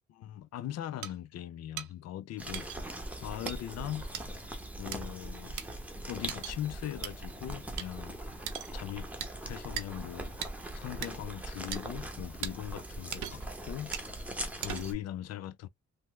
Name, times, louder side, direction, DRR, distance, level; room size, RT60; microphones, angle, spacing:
voice 1, 0.1-2.7 3.2-4.1 4.8-5.6 6.1-8.2 8.7-9.1 9.4-10.4 10.7-14.2 14.6-15.7, left 12 dB, 55° left, 0.4 m, -40 dB
sound 1, 1.0-1.1 1.8-1.9 2.5-2.8 3.5-3.6 4.1-4.3 4.9-5.0 5.6-5.7 6.3-6.6 7.0-7.1 7.8-7.9 8.5-8.7 9.2-9.3 9.8-9.9 10.4-10.5 11.0-11.1 11.7-11.8 12.4-12.5 13.1-13.5 13.9-14.1 14.6-15.0, right 10 dB, 75° right, 0.6 m, -38 dB
sound 2, 2.4-14.9, right 1 dB, 5° right, 0.8 m, -41 dB
3.4 x 2.1 x 3.0 m
cardioid pair, 90°, 30 cm